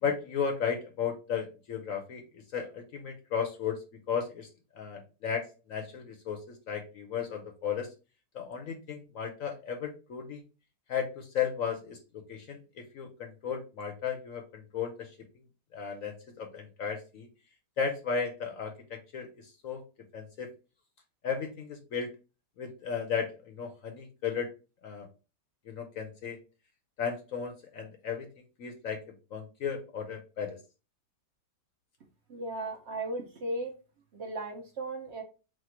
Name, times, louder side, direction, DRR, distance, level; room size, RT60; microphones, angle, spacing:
voice 1, 0.0-3.8 4.1-4.5 4.8-7.9 8.3-10.4 10.9-15.1 15.7-17.3 17.8-19.8 20.1-20.5 21.2-22.1 22.6-24.5 24.8-25.1 25.7-26.4 27.0-28.3 28.6-29.0 29.3-30.6, left 7 dB, 65° left, 4 dB, 1.0 m, -35 dB
voice 2, 32.3-33.7 34.1-35.2, right 2 dB, 55° right, 3 dB, 0.8 m, -36 dB
4.3 x 2.4 x 4.3 m, 0.32 s
omnidirectional pair, 1.8 m